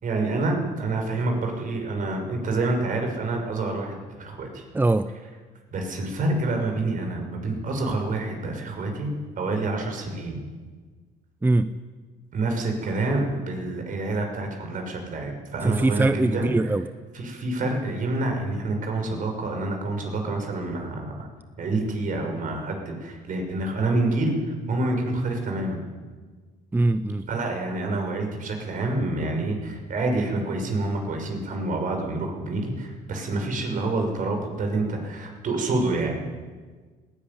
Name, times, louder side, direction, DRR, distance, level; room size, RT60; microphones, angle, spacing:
voice 1, 0.0-4.6 5.7-10.4 12.3-16.5 17.1-21.3 21.6-25.8 27.3-36.2, right 2 dB, 50° right, 3 dB, 6.2 m, -27 dB
voice 2, 4.7-5.1 11.4-11.8 15.6-16.9 26.7-27.3, right 2 dB, 10° right, 12 dB, 0.7 m, -22 dB
19.5 x 17.5 x 9.8 m, 1.4 s
cardioid pair, 110°, 17 cm